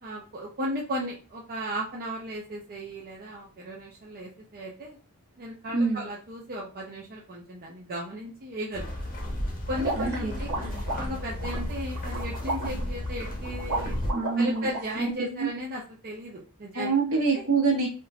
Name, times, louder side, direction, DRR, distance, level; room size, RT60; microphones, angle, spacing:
voice 1, 0.0-5.0 5.4-8.9 9.7-14.0 14.4-16.9 17.3-17.4, equal, 40° right, -3 dB, 0.6 m, -36 dB
voice 2, 5.7-6.1 9.9-10.5 12.6-12.9 14.1-14.7 14.9-15.5 16.7-17.9, right 4 dB, 65° right, 0 dB, 1.2 m, -26 dB
sound 1, 8.7-14.1, left 1 dB, 40° left, 0.8 m, -33 dB
sound 2, 9.8-14.8, right 2 dB, 85° right, 0.9 m, -34 dB
3.6 x 2.8 x 2.3 m, 0.36 s
head